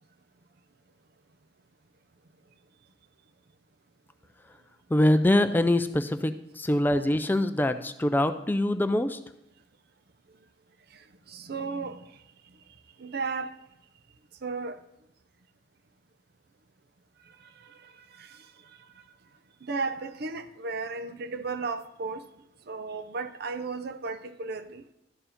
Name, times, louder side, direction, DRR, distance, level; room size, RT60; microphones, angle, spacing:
voice 1, 4.9-9.2, left 1 dB, 10° left, 9 dB, 0.3 m, -24 dB
voice 2, 11.3-12.0 13.0-13.5 14.4-14.8 19.6-22.2 22.7-24.9, right 4 dB, 60° right, 11 dB, 0.6 m, -34 dB
12.5 x 4.8 x 5.1 m, 0.83 s
head